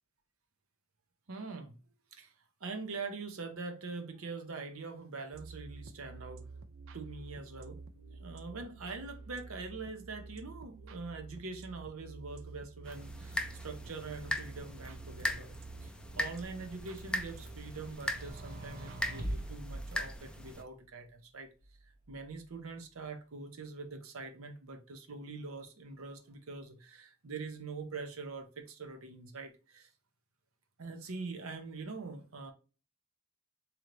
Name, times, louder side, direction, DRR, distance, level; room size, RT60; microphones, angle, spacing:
voice 1, 1.3-1.8 2.1-2.3 2.6-6.4 6.9-7.8 8.1-21.5 22.1-29.9 30.8-32.5, right 4 dB, 85° right, 0.8 m, -44 dB
sound 1, 5.3-19.5, right 3 dB, 65° right, 0.4 m, -49 dB
sound 2, 12.9-20.6, left 1 dB, 5° left, 0.4 m, -40 dB
sound 3, 18.0-20.7 21.6-22.6, right 1 dB, 45° right, 0.9 m, -43 dB
3.8 x 3.0 x 3.2 m
head